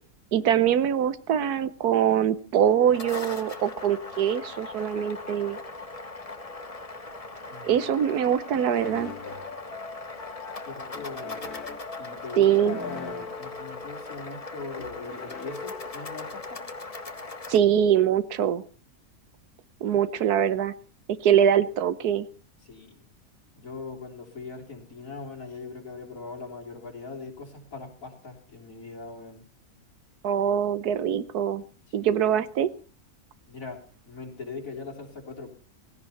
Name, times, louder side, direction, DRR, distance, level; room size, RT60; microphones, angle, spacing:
voice 1, 0.3-5.6 7.6-9.1 12.4-12.8 17.5-18.6 19.8-20.7 21.2-22.3 30.2-31.6 31.9-32.7, right 9 dB, 85° right, 14 dB, 1.4 m, -23 dB
sound 1, 2.7-17.6, left 3 dB, 25° left, 1.2 m, -40 dB
voice 2, 7.5-7.9 10.6-11.5 12.0-16.6 22.6-23.0 23.6-29.4 31.9-32.1 33.5-35.5, left 4 dB, 60° left, 0 dB, 3.8 m, -41 dB
sound 2, 8.7-16.4, left 4 dB, 80° left, 2.3 m, -41 dB
17.5 x 16.5 x 4.2 m, 0.39 s
omnidirectional pair, 1.6 m